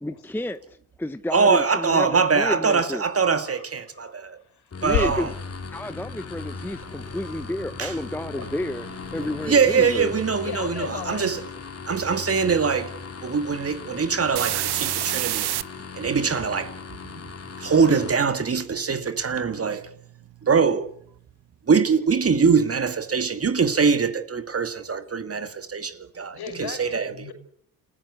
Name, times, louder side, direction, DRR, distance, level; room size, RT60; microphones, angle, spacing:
voice 1, 0.0-3.0 4.8-5.3 5.7-8.9 9.1-10.1, left 1 dB, 5° left, 0.9 m, -30 dB
voice 2, 1.3-4.4 4.8-5.3 7.8-7.9 9.4-11.4 11.9-12.9 13.2-15.4 16.0-16.7 17.6-19.9 20.4-20.9 21.7-27.3, right 5 dB, 35° right, 2.1 m, -23 dB
voice 3, 3.2-3.7 3.9-4.8 8.2-8.7 9.1-9.3 10.4-11.3 14.8-15.2 26.3-27.3, left 7 dB, 60° left, 5.5 m, -38 dB
sound 1, 4.7-18.1, left 4 dB, 35° left, 2.9 m, -38 dB
Growling / Hiss, 4.8-10.1, left 8 dB, 90° left, 3.9 m, -36 dB
sound 2, 6.9-7.0 7.8-10.0 14.3-15.6 18.1-20.2 20.5-20.6, right 15 dB, 65° right, 1.0 m, -30 dB
28.5 x 15.0 x 8.4 m
supercardioid pair, 75°, 42 cm